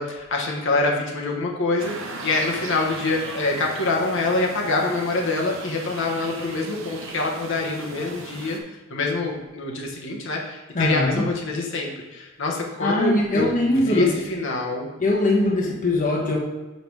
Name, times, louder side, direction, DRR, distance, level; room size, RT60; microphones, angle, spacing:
voice 1, 0.0-8.6 8.9-14.9, left 2 dB, 65° left, -1 dB, 1.2 m, -25 dB
sound 1, 1.8-8.6, right 3 dB, 65° right, 0.9 m, -37 dB
voice 2, 10.7-11.3 12.8-14.2 15.0-16.4, left 2 dB, 40° left, -2 dB, 1.2 m, -21 dB
5.9 x 5.4 x 4.7 m, 1.1 s
head